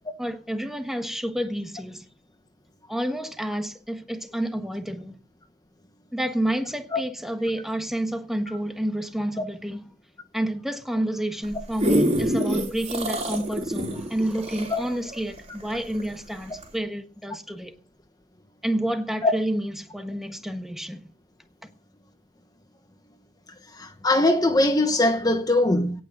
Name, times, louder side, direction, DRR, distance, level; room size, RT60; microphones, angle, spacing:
voice 1, 0.2-2.1 2.9-5.2 6.1-9.9 10.3-17.7 18.6-21.0, right 1 dB, ahead, 1.4 m, -29 dB
sound 1, 11.4-16.1 16.6-16.7, equal, 40° right, 3.9 m, -26 dB
voice 2, 23.7-26.0, left 2 dB, 20° left, 1.1 m, -21 dB
18.0 x 6.3 x 7.9 m
head